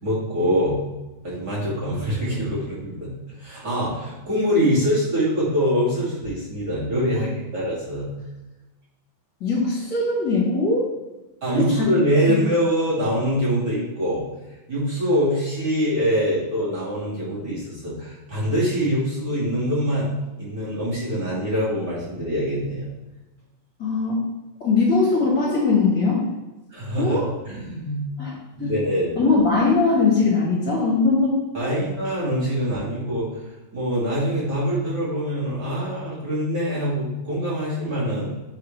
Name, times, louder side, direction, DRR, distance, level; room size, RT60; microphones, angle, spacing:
voice 1, 0.0-0.8 1.2-3.1 3.4-8.1 11.4-14.2 14.7-20.1 20.4-22.9 26.7-28.0 28.5-29.1 31.5-33.4 33.7-38.3, equal, 25° right, -8 dB, 2.2 m, -24 dB
voice 2, 9.4-10.8 11.6-11.9 12.3-12.4 23.8-24.2 24.6-26.2 27.0-27.3 28.2-28.3 28.6-28.7 29.1-31.4, left 3 dB, 50° left, -5 dB, 1.4 m, -20 dB
9.2 x 5.5 x 3.3 m, 1.0 s
omnidirectional pair, 5.0 m